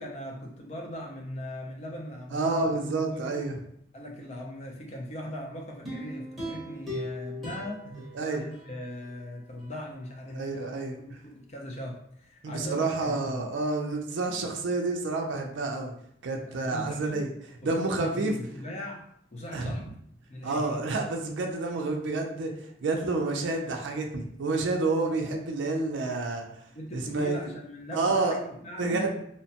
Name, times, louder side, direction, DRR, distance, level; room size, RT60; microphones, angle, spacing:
voice 1, 0.0-2.7 3.1-3.4 3.9-7.8 8.2-13.5 16.5-17.3 17.6-19.0 19.3-19.9 20.3-20.8 26.7-29.1, equal, 35° left, 1 dB, 0.5 m, -39 dB
voice 2, 2.3-3.6 8.1-8.4 10.3-11.0 12.4-15.9 16.2-17.3 17.6-18.3 19.5-19.7 20.4-26.5 26.9-27.3 27.9-28.4 28.8-29.2, right 3 dB, 75° right, 2 dB, 0.4 m, -29 dB
sound 1, 5.8-9.1 9.6-9.7, left 1 dB, ahead, 0.8 m, -39 dB
2.8 x 2.1 x 2.8 m, 0.69 s
head